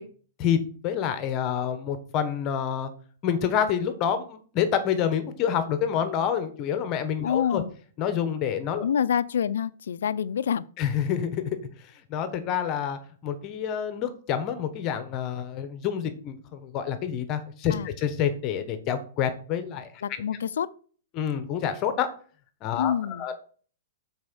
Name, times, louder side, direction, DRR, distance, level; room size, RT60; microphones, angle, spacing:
voice 1, 0.4-2.9 3.2-7.6 8.0-8.8 10.8-11.6 12.1-19.9 21.1-22.1 22.6-23.3, left 8 dB, 35° left, 1.1 m, -28 dB
voice 2, 7.2-7.7 8.8-10.7 17.7-17.9 20.0-20.7 22.8-23.3, left 8 dB, 80° left, 0.4 m, -27 dB
6.2 x 4.3 x 6.2 m
hypercardioid pair, 140°, 0 cm